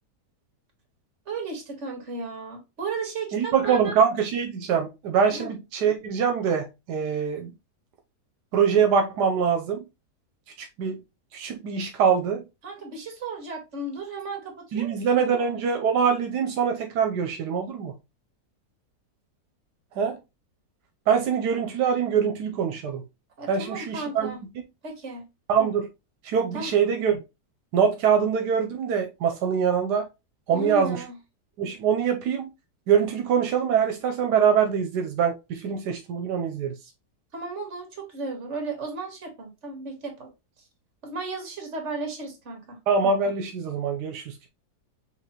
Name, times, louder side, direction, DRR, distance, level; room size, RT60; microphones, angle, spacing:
voice 1, 1.3-4.0 5.3-5.5 12.6-15.6 23.4-24.4 24.8-25.3 26.5-26.7 30.5-31.2 37.3-40.3 41.0-42.8, right 3 dB, 45° right, 1.8 m, -35 dB
voice 2, 3.3-7.5 8.5-9.8 10.6-11.0 11.3-12.4 14.7-17.9 20.0-20.2 21.1-23.0 23.5-24.3 25.5-25.9 26.2-27.2 27.7-30.1 30.5-31.0 31.6-32.5 32.9-36.7 42.9-44.5, right 7 dB, 85° right, 1.3 m, -24 dB
5.8 x 3.1 x 2.9 m
omnidirectional pair, 1.8 m